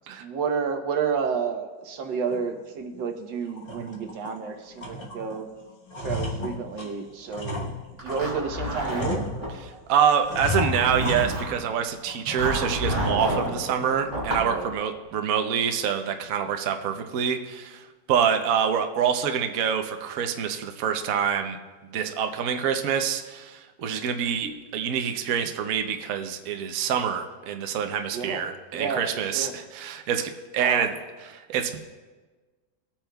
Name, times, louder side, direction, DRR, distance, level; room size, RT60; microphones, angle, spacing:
voice 1, 0.2-5.5 6.0-9.3 14.4-14.7 28.1-28.4 28.7-29.5 30.6-30.9, right 6 dB, 90° right, 5 dB, 1.7 m, -30 dB
sound 1, 2.3-2.5 2.9-3.1 3.5-4.4 4.8-5.4 5.7-8.3 8.8-9.8 10.3-11.7 12.1-12.7 13.0-13.1 13.6-14.0, left 2 dB, 35° left, 1.2 m, -34 dB
Zipper (clothing), 8.0-9.5 10.3-11.6 12.4-13.5 14.1-14.5, right 1 dB, 30° right, 3.1 m, -29 dB
voice 2, 9.9-21.6 21.9-30.9 31.3-31.8, right 8 dB, 60° right, 5 dB, 1.0 m, -26 dB
24.0 x 8.8 x 2.3 m, 1.3 s
omnidirectional pair, 1.9 m